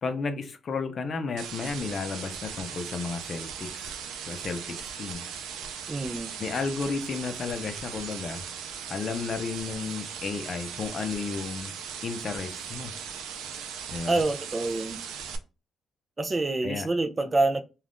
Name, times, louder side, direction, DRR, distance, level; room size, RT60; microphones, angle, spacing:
voice 1, 0.0-3.9 4.3-5.2 6.4-8.4 8.9-11.7 12.0-12.9 13.9-14.2 16.6-16.9, left 4 dB, 50° left, 0.5 m, -33 dB
sound 1, 1.4-15.4, right 7 dB, 90° right, 0.4 m, -38 dB
voice 2, 5.9-6.3 14.1-15.0 16.2-17.6, right 2 dB, 25° right, 0.3 m, -26 dB
2.4 x 2.3 x 3.4 m
cardioid pair, 90°, 0 cm